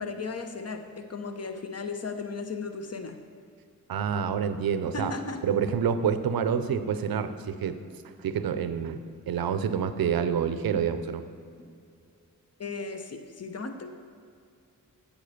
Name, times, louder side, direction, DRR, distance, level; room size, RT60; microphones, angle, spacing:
voice 1, 0.0-3.2 4.9-5.4 12.6-13.9, left 4 dB, 45° left, 7 dB, 1.0 m, -36 dB
voice 2, 3.9-5.1 5.4-7.8 8.2-11.2, right 7 dB, 90° right, 11 dB, 0.6 m, -28 dB
8.7 x 7.3 x 6.7 m, 2.4 s
cardioid pair, 45°, 35 cm